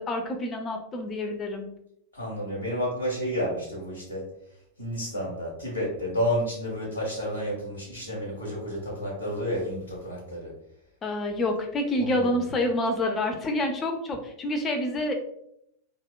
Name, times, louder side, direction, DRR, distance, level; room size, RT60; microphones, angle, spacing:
voice 1, 0.0-1.7 11.0-15.1, left 1 dB, 25° left, 4 dB, 0.4 m, -28 dB
voice 2, 2.1-4.2 4.8-10.5 12.0-12.4, equal, 90° left, -3 dB, 0.7 m, -31 dB
2.7 x 2.0 x 2.2 m, 0.74 s
figure-of-eight pair, 90°, 0 cm